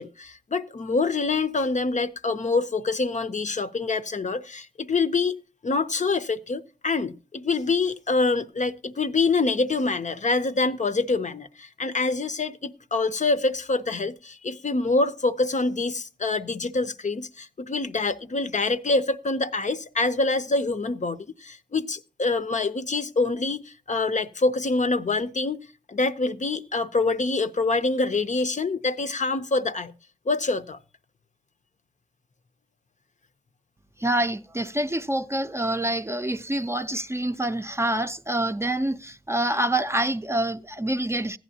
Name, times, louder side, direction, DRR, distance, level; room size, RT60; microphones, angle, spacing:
voice 1, 0.0-5.4 5.6-29.9 30.3-30.8, left 3 dB, 50° left, 0.6 m, -26 dB
voice 2, 34.0-41.4, right 1 dB, 15° right, 0.5 m, -26 dB
15.5 x 10.0 x 2.8 m
wide cardioid pair, 70°, 16 cm